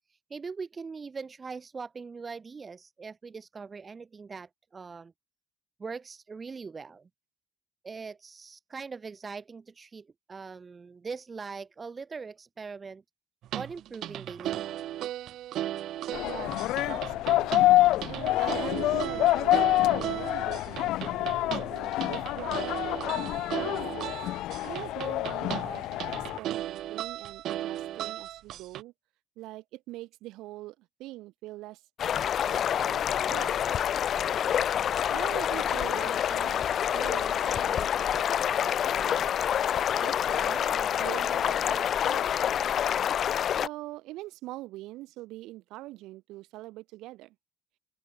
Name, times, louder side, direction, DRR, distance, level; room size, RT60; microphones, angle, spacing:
voice 1, 0.1-5.1 5.8-7.1 7.8-13.0 13.5-14.8, right 5 dB, 20° right, 5.0 m, -41 dB
sound 1, 13.4-28.8, right 13 dB, 55° right, 2.6 m, -36 dB
sound 2, 16.1-26.4, left 16 dB, 70° left, 1.2 m, -27 dB
voice 2, 16.2-17.6 18.1-23.8 24.6-28.9 29.4-31.8 32.3-33.6 35.1-39.2 40.0-42.3 43.6-47.4, right 18 dB, 85° right, 7.2 m, -43 dB
sound 3, 32.0-43.7, left 9 dB, 40° left, 1.0 m, -27 dB
open air
cardioid pair, 180°, 0 cm